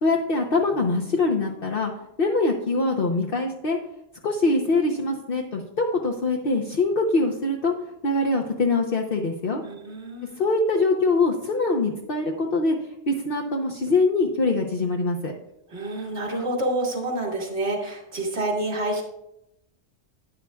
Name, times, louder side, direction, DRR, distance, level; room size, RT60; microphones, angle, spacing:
voice 1, 0.0-1.9 2.2-3.8 4.2-7.7 8.0-9.6 10.4-12.8 13.1-15.3, left 3 dB, 55° left, 1 dB, 1.0 m, -23 dB
voice 2, 9.6-10.4 15.7-19.0, right 1 dB, 80° right, -1 dB, 2.2 m, -28 dB
11.0 x 9.5 x 2.3 m, 0.83 s
omnidirectional pair, 1.2 m